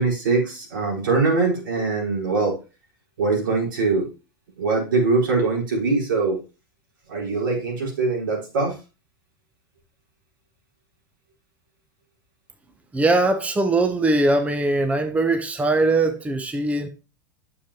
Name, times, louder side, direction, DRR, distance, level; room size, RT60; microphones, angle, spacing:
voice 1, 0.0-2.5 3.2-4.1 4.6-6.4 7.1-8.7, right 3 dB, 80° right, 4.6 m, -22 dB
voice 2, 12.9-16.9, right 2 dB, 10° right, 1.0 m, -21 dB
9.0 x 7.0 x 2.9 m
hypercardioid pair, 100°, 11 cm